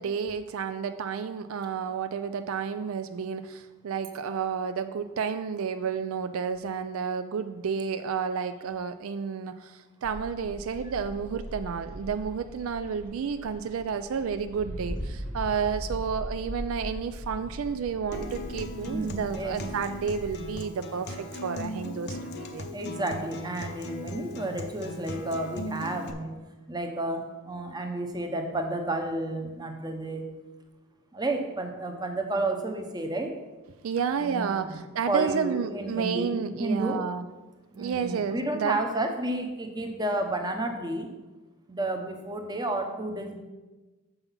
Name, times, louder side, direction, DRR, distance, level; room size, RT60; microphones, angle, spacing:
voice 1, 0.0-22.7 33.8-37.3 37.8-38.8, right 6 dB, 70° right, 10 dB, 0.4 m, -31 dB
sound 1, 10.0-20.6, equal, 85° right, 1.4 m, -40 dB
Acoustic guitar, 18.1-26.1, left 1 dB, 50° left, 0.7 m, -39 dB
voice 2, 18.7-19.6 22.7-26.3 26.7-30.2 31.1-33.3 34.2-34.8 35.1-37.0 37.7-41.1 41.7-43.4, right 2 dB, 20° right, 4 dB, 0.8 m, -31 dB
6.9 x 5.5 x 5.6 m, 1.2 s
head